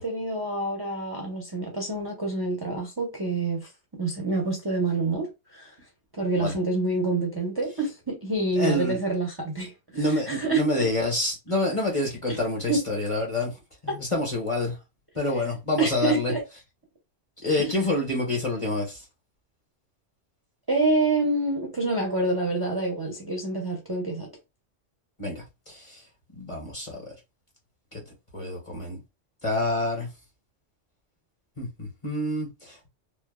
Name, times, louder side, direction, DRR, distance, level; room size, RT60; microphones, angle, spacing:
voice 1, 0.0-5.7 6.1-10.9 12.3-12.4 12.7-12.8 13.9-14.0 15.3-15.4 15.8-16.4 17.6-17.7 20.7-24.3, right 2 dB, 30° right, 0.4 m, -27 dB
voice 2, 8.5-9.0 9.9-13.5 13.8-14.8 15.1-16.3 17.4-19.0 25.2-26.0 26.3-27.0 27.9-28.0 28.3-29.0 29.4-30.1 31.6-32.9, left 2 dB, 30° left, 0.8 m, -27 dB
3.1 x 2.0 x 2.3 m
omnidirectional pair, 1.2 m